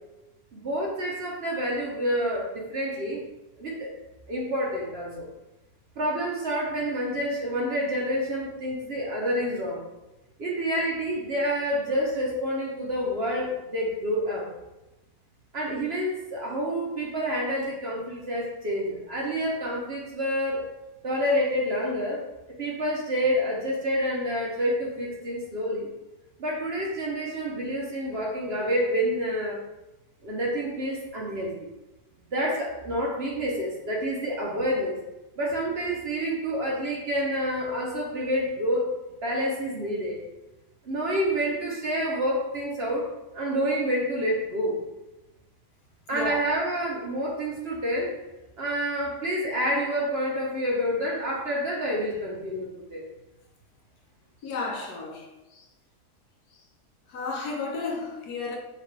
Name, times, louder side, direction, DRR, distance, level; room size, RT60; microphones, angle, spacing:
voice 1, 0.5-3.2 3.6-3.9 4.3-5.2 6.0-9.8 10.4-14.5 15.5-20.6 21.0-22.2 22.6-25.9 26.4-29.6 30.2-31.5 32.3-35.0 35.4-38.9 39.2-40.2 40.8-43.0 43.3-44.8 46.1-48.1 48.6-53.0, equal, 50° right, 1.0 m, -28 dB
voice 2, 46.1-46.4 54.4-55.3 55.5-55.6 57.1-58.6, left 3 dB, 85° left, 1.4 m, -32 dB
5.7 x 2.5 x 3.2 m
omnidirectional pair, 1.6 m